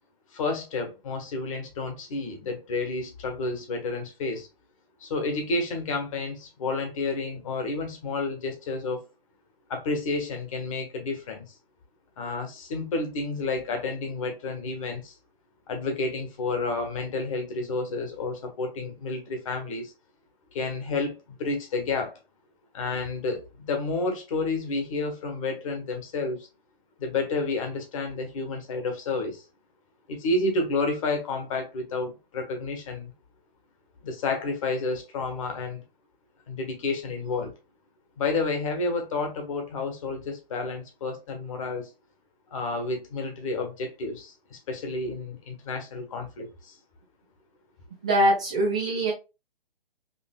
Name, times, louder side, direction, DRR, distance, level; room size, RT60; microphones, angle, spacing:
voice 1, 0.3-4.5 5.0-9.1 9.7-11.5 12.2-15.1 15.7-19.9 20.5-22.2 22.7-26.5 27.0-29.4 30.1-33.1 34.0-35.8 36.5-37.5 38.2-41.9 42.5-46.7, left 3 dB, 35° left, 1.2 m, -30 dB
voice 2, 48.0-49.1, right 1 dB, 5° right, 0.4 m, -23 dB
5.2 x 2.7 x 2.3 m
figure-of-eight pair, 135°, 30 cm